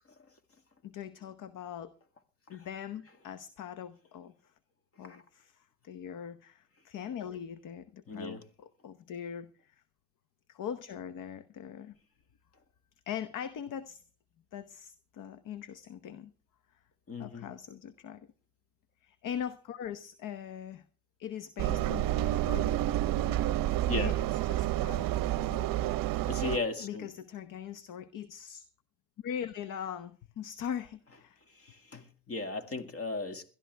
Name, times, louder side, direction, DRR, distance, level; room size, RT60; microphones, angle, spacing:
voice 1, 0.8-1.9 2.5-4.3 5.0-9.8 10.5-11.9 13.1-14.0 14.5-16.3 17.2-18.3 19.0-20.8 21.2-22.7 23.2-25.7 26.8-28.7 29.2-31.4, left 9 dB, 50° left, 1.0 m, -41 dB
voice 2, 8.1-8.4 17.1-17.5 23.8-24.1 26.3-27.1 31.6-33.4, left 3 dB, 35° left, 2.1 m, -36 dB
Engine, 21.6-26.6, right 14 dB, 50° right, 0.8 m, -29 dB
21.0 x 12.5 x 3.4 m
supercardioid pair, 85°, 42 cm